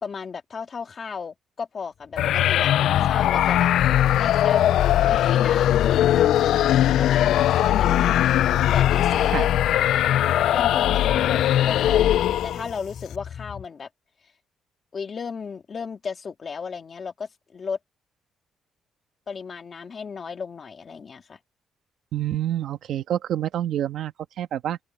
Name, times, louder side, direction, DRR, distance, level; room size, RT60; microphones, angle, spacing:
voice 1, 0.0-3.7 4.2-4.8 5.1-6.7 7.0-8.1 8.7-9.8 10.5-13.9 14.9-17.8 19.3-21.4, left 5 dB, 30° left, 2.5 m, -34 dB
sound 1, 2.0-13.6, left 8 dB, 45° left, 3.1 m, -40 dB
sound 2, 2.2-12.7, left 12 dB, 75° left, 0.3 m, -20 dB
voice 2, 22.1-24.8, right 11 dB, 70° right, 1.3 m, -27 dB
open air
cardioid pair, 170°, 0 cm